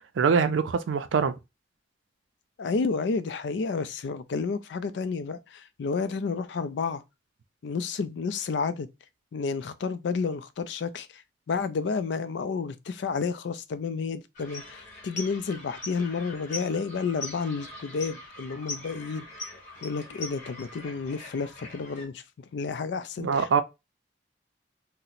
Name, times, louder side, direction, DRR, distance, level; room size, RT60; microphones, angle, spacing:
voice 1, 0.2-1.3 23.2-23.6, right 6 dB, 85° right, 0.4 m, -23 dB
voice 2, 2.6-7.0 7.6-8.9 9.3-11.2 11.5-19.3 19.8-22.2 22.5-23.6, left 5 dB, 70° left, 0.4 m, -31 dB
sound 1, 14.3-22.0, left 2 dB, 40° left, 1.2 m, -42 dB
2.7 x 2.1 x 4.0 m
head